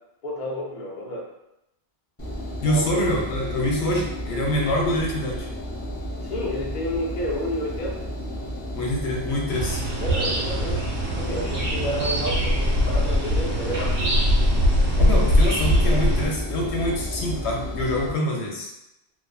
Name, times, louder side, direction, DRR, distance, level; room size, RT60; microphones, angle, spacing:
voice 1, 0.2-1.3 2.6-3.0 6.2-8.1 10.0-10.9 11.1-14.2, equal, 50° left, -4 dB, 0.7 m, -30 dB
Engine, 2.2-18.1, equal, 25° left, 0.3 m, -33 dB
voice 2, 2.6-5.5 8.7-9.8 15.0-18.7, left 1 dB, 85° left, -1 dB, 0.9 m, -25 dB
sound 1, 9.5-16.3, equal, 85° right, 1.2 m, -22 dB
sound 2, 10.1-17.1, left 1 dB, 30° right, 0.8 m, -42 dB
2.5 x 2.4 x 2.3 m, 0.88 s
omnidirectional pair, 1.1 m